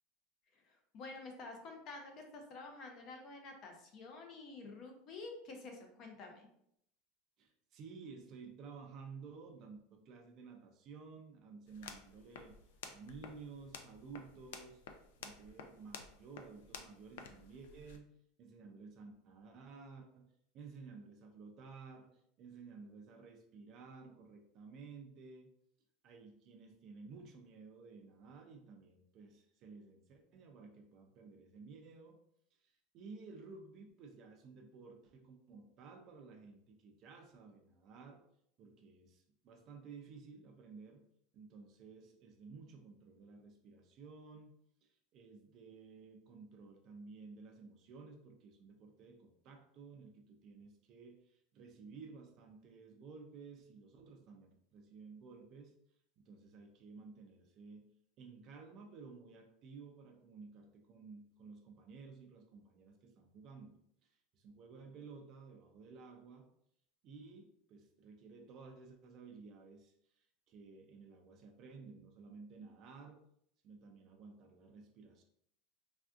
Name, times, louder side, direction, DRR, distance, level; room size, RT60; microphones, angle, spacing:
voice 1, 0.5-6.5, left 3 dB, 30° left, 3 dB, 0.5 m, -50 dB
voice 2, 7.4-12.6 12.9-14.8 15.2-18.1 18.4-25.5 26.0-32.2 32.5-38.2 38.6-41.0 41.3-44.5 44.8-55.7 56.2-66.5 67.0-73.2 73.6-75.2, right 4 dB, 30° right, 3 dB, 0.3 m, -54 dB
sound 1, 11.7-18.0, left 6 dB, 90° left, 0.4 m, -53 dB
3.3 x 2.5 x 2.3 m, 0.71 s
supercardioid pair, 180°, 0 cm